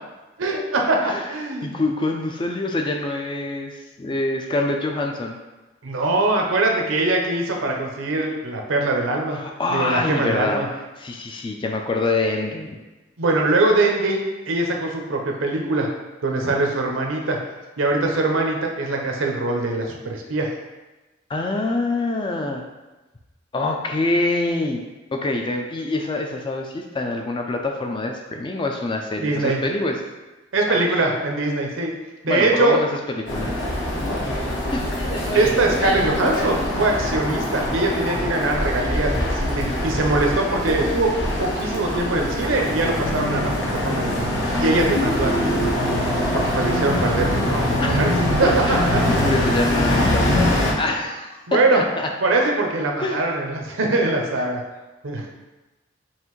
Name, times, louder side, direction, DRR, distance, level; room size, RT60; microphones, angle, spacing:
voice 1, 0.4-1.8 5.8-9.4 9.7-10.7 13.2-15.9 16.2-17.4 17.8-20.5 29.2-29.6 30.5-31.9 32.2-32.8 35.3-41.1 41.4-45.7 46.3-49.1 49.5-49.7 51.5-51.8 52.2-54.6 55.0-55.3, right 2 dB, 70° right, 1 dB, 0.7 m, -22 dB
voice 2, 1.6-5.4 9.3-10.6 11.0-12.8 21.3-22.6 23.5-24.8 25.1-30.0 30.7-30.8 32.3-33.5 34.7-34.9 47.8-48.0 48.4-52.1 53.0-53.3, left 2 dB, 25° left, 2 dB, 0.3 m, -25 dB
sound 1, 33.3-50.7, left 1 dB, 60° left, 0.9 m, -23 dB
5.5 x 2.5 x 3.1 m, 1.1 s
head